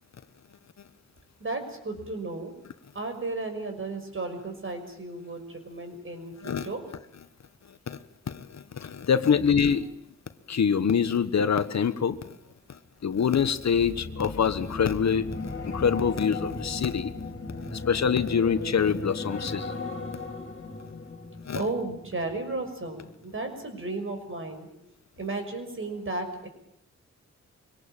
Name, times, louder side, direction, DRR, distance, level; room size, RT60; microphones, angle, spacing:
voice 1, 1.4-2.5 2.9-6.8 21.5-24.8 25.2-26.5, right 2 dB, 45° right, 6 dB, 6.0 m, -34 dB
voice 2, 8.3-9.9 10.5-12.2 13.0-15.2 15.6-17.1 17.6-19.8 21.5-21.6, left 7 dB, 65° left, 12 dB, 1.3 m, -25 dB
sound 1, 13.3-22.7 23.0-23.3, left 3 dB, 45° left, 3.8 m, -36 dB
24.0 x 18.5 x 9.0 m, 0.77 s
cardioid pair, 75°, 29 cm